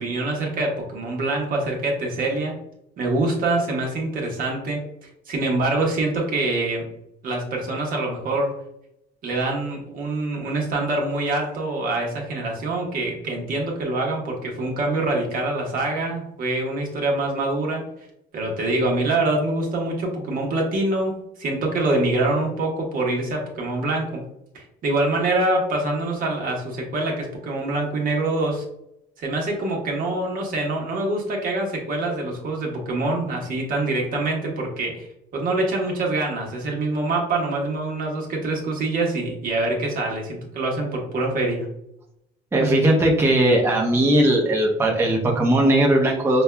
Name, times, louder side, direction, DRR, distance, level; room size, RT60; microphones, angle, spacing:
voice 1, 0.0-2.5 3.0-6.9 7.2-8.5 9.2-17.8 18.3-24.2 24.5-28.6 29.2-35.1 35.3-41.7, right 2 dB, 55° right, -1 dB, 1.1 m, -25 dB
voice 2, 42.5-46.4, right 1 dB, 15° right, -2 dB, 0.6 m, -18 dB
5.2 x 2.3 x 2.2 m, 0.80 s
cardioid pair, 110°, 17 cm